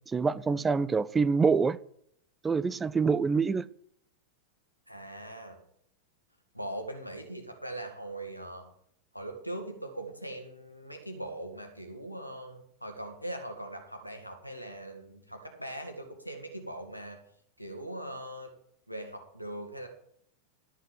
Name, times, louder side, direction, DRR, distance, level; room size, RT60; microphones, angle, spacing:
voice 1, 0.1-1.8 2.4-3.7, right 5 dB, 15° right, 0.4 m, -26 dB
voice 2, 4.9-5.6 6.5-8.7 9.1-17.2 17.6-18.5 18.9-19.9, right 1 dB, 90° left, 2.0 m, -41 dB
12.5 x 5.9 x 7.4 m
figure-of-eight pair, 90°, 0 cm